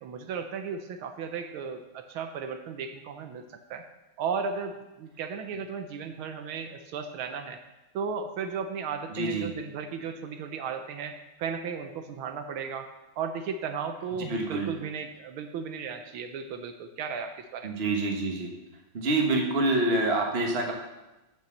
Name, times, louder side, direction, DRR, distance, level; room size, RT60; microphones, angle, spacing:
voice 1, 0.0-3.4 3.7-3.8 4.2-7.6 7.9-12.9 13.2-17.7, right 6 dB, 80° right, 6 dB, 1.6 m, -35 dB
voice 2, 9.1-9.5 14.3-14.7 17.6-18.5 18.9-20.7, right 2 dB, 35° right, 1 dB, 1.4 m, -26 dB
7.5 x 6.5 x 7.0 m, 1.0 s
omnidirectional pair, 2.3 m